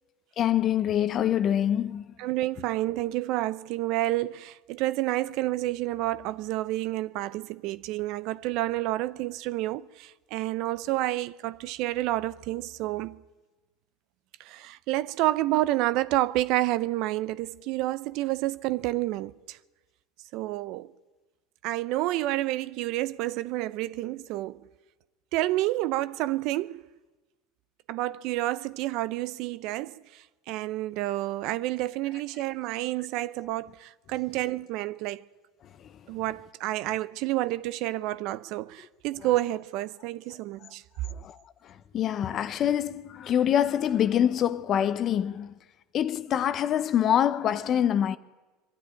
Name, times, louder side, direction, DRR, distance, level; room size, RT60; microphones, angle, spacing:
voice 1, 0.4-2.1 35.6-36.1 40.6-40.7 41.0-45.5 45.9-48.2, left 10 dB, 45° left, 0.9 m, -26 dB
voice 2, 2.2-13.2 14.4-19.6 20.3-20.9 21.6-24.6 25.3-26.8 27.9-35.2 36.1-40.8, right 16 dB, 60° right, 0.6 m, -29 dB
21.5 x 12.5 x 9.8 m
hypercardioid pair, 95°, 0 cm